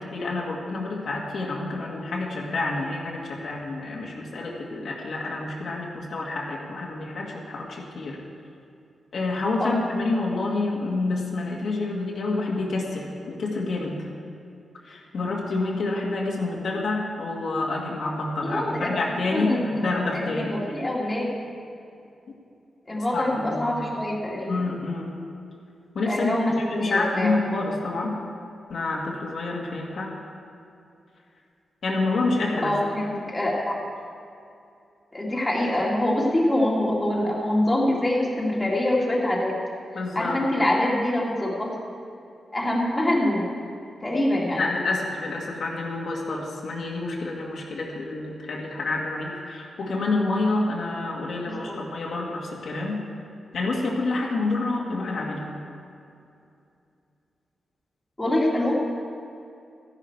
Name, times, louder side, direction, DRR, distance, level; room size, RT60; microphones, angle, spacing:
voice 1, 0.0-8.2 9.1-14.0 14.8-20.6 23.1-23.8 24.5-25.1 25.9-28.2 28.7-30.1 31.8-32.7 40.0-40.4 44.6-53.0 53.5-55.5, left 3 dB, 65° left, -2 dB, 1.8 m, -28 dB
voice 2, 18.5-18.9 19.3-21.4 22.9-24.6 26.1-27.3 32.6-33.8 35.1-39.6 40.2-41.7 42.5-43.5 44.0-44.6 51.5-51.8 58.2-58.7, left 1 dB, 15° left, -4 dB, 2.1 m, -25 dB
13.5 x 11.0 x 4.6 m, 2.6 s
wide cardioid pair, 130°, 0 cm